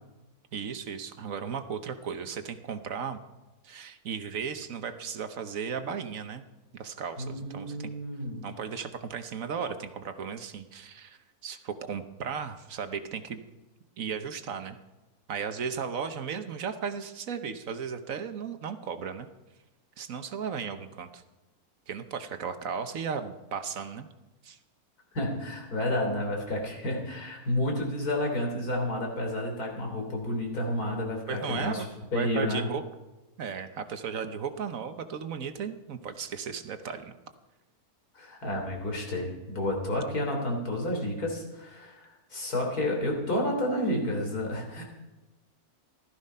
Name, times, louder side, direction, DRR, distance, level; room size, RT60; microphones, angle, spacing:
voice 1, 0.5-3.2 3.6-6.4 6.7-7.9 8.4-13.4 14.0-14.8 15.3-19.3 20.0-21.2 21.9-24.1 24.4-24.6 31.3-31.9 32.1-32.8 33.4-37.1, right 6 dB, 65° right, 9 dB, 1.3 m, -35 dB
voice 2, 7.2-8.5 25.1-31.8 32.1-32.7 38.2-44.8, left 1 dB, 80° left, 1 dB, 3.9 m, -30 dB
15.5 x 13.0 x 5.5 m, 1.1 s
omnidirectional pair, 1.6 m